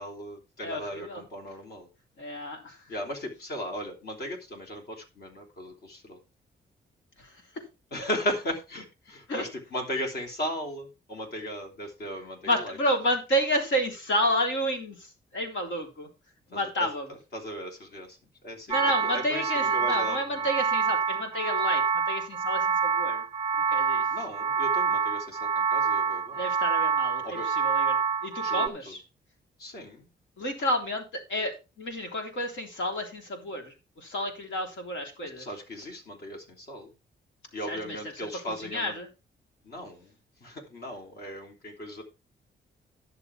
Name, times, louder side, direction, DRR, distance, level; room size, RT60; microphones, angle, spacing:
voice 1, 0.0-1.9 2.9-6.2 7.9-12.7 16.5-16.9 17.3-18.2 18.4-20.5 24.1-26.4 27.2-27.5 28.4-28.7 29.6-30.1 35.2-36.9 37.5-38.9 39.6-40.1 40.4-42.0, equal, 55° left, 3 dB, 3.3 m, -37 dB
voice 2, 0.6-1.2 2.2-2.9 7.2-7.6 9.3-9.4 12.4-16.1 16.5-17.2 18.7-23.2 23.6-24.1 26.3-29.0 30.4-35.5 37.6-39.1, equal, 80° left, 3 dB, 3.5 m, -31 dB
sound 1, 18.7-28.7, right 6 dB, 25° right, 0.5 m, -27 dB
11.0 x 6.8 x 4.6 m, 0.28 s
cardioid pair, 130°, 19 cm